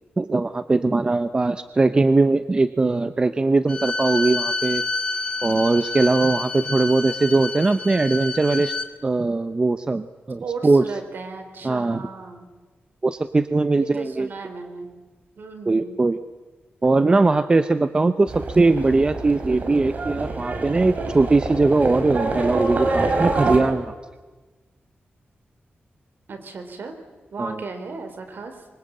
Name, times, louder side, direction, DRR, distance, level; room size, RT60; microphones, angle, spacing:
voice 1, 0.2-4.8 5.4-8.7 9.0-10.8 11.6-12.0 13.0-14.3 15.7-16.2 16.8-23.9 27.4-27.6, right 3 dB, 25° right, 10 dB, 0.8 m, -20 dB
Bowed string instrument, 3.7-8.9, left 3 dB, 25° left, 1.8 m, -28 dB
voice 2, 10.4-12.5 13.8-14.9 15.4-16.0 26.3-26.9 27.3-28.7, right 4 dB, 60° right, 6 dB, 4.3 m, -35 dB
Livestock farm animals working animals, 18.3-23.6, right 3 dB, 40° right, 4.4 m, -26 dB
26.0 x 25.0 x 8.9 m, 1.3 s
wide cardioid pair, 180°, 4 cm